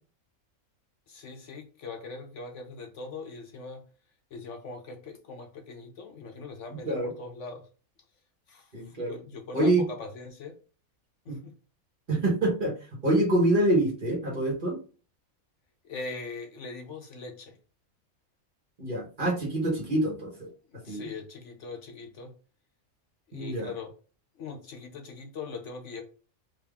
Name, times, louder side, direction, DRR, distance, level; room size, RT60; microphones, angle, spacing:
voice 1, 1.1-3.8 4.3-7.6 8.5-10.5 11.3-11.5 15.8-17.6 20.7-22.3 23.3-23.9 24.4-26.0, left 3 dB, 60° left, 4 dB, 1.0 m, -41 dB
voice 2, 6.7-7.1 8.7-9.1 9.5-9.9 11.3-11.4 12.1-12.7 13.0-14.8 18.8-20.5 20.9-21.1 23.3-23.7, right 1 dB, 40° right, -2 dB, 1.3 m, -26 dB
3.7 x 2.8 x 3.5 m, 0.36 s
omnidirectional pair, 1.5 m